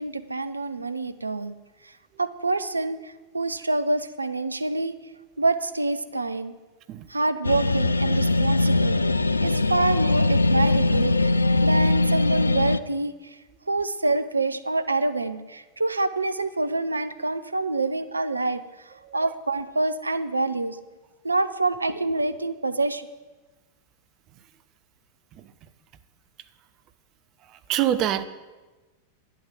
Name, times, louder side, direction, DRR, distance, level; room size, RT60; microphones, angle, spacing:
voice 1, 0.0-1.5 2.2-5.0 5.4-6.6 7.1-9.0 9.4-11.3 11.6-13.4 13.7-18.6 19.1-20.8 21.2-23.1, right 2 dB, 80° right, 0.6 m, -26 dB
sound 1, 7.4-12.8, left 2 dB, 80° left, 0.4 m, -21 dB
voice 2, 27.7-28.2, right 11 dB, 35° right, 0.7 m, -23 dB
10.5 x 8.4 x 7.6 m
figure-of-eight pair, 90°, 0 cm